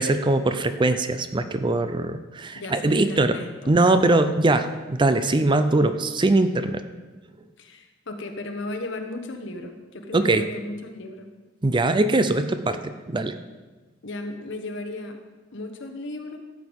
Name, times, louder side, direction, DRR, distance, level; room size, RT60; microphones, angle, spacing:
voice 1, 0.0-3.4 3.7-6.8 10.1-10.5 11.6-13.4, right 2 dB, 25° right, 10 dB, 0.5 m, -21 dB
voice 2, 2.5-3.8 7.6-11.3 14.0-15.2 15.5-16.4, left 2 dB, 65° left, 5 dB, 1.3 m, -35 dB
14.0 x 8.1 x 5.3 m, 1.3 s
head